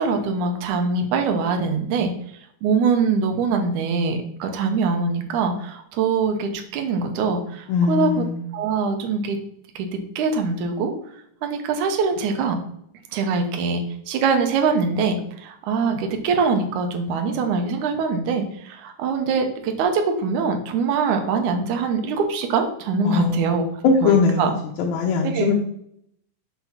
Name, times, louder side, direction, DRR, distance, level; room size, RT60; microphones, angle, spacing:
voice 1, 0.0-2.1 2.6-8.2 8.5-9.4 9.8-9.9 10.2-10.9 11.4-12.6 13.1-23.6 24.0-24.5 25.2-25.5, right 4 dB, 70° right, 5 dB, 2.2 m, -23 dB
voice 2, 7.7-8.5 23.0-23.5 23.8-24.5 24.8-25.5, left 5 dB, 75° left, 0 dB, 2.0 m, -20 dB
5.9 x 4.1 x 5.7 m, 0.71 s
omnidirectional pair, 3.8 m